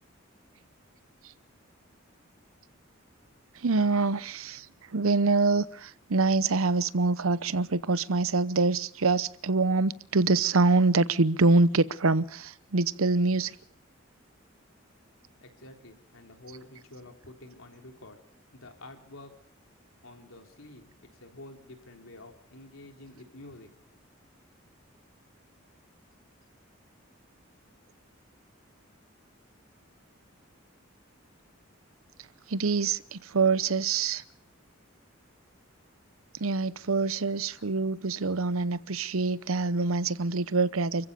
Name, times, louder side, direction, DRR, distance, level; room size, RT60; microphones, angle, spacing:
voice 1, 3.5-4.7 4.9-13.5 32.5-34.2 36.4-41.1, right 3 dB, 90° right, 0.8 m, -25 dB
voice 2, 15.4-18.2 18.5-19.3 20.0-23.7, left 1 dB, 80° left, 3.6 m, -49 dB
29.5 x 15.0 x 6.9 m
head